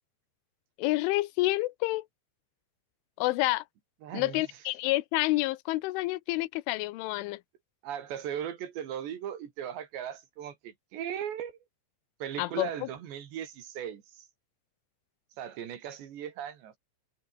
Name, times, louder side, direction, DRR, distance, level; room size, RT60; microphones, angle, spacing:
voice 1, 0.8-2.1 3.2-3.6 4.1-7.4 12.4-12.9, left 19 dB, 85° left, 3.3 m, -29 dB
voice 2, 4.0-4.4 7.8-11.5 12.2-14.3 15.4-16.8, right 9 dB, 65° right, 4.5 m, -38 dB
omnidirectional pair, 5.5 m